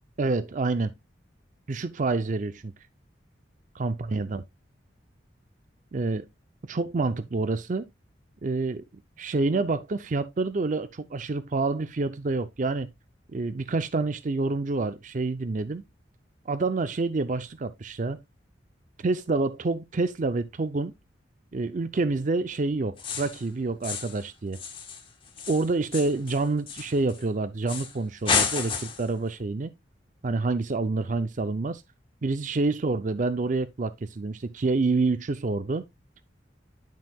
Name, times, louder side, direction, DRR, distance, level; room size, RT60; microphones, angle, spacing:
voice 1, 0.2-0.9 1.7-2.7 3.7-4.4 5.9-6.3 6.7-7.8 8.4-8.8 9.2-12.9 13.3-15.8 16.5-18.2 19.0-20.9 21.5-24.6 25.5-29.7 30.2-31.8 32.2-35.9, right 3 dB, 45° right, 0.5 m, -27 dB
sound 1, 23.0-23.4 23.8-24.2 24.5-27.2 27.7-27.9 28.2-29.1, left 6 dB, 30° left, 1.7 m, -30 dB
10.5 x 5.6 x 2.3 m
head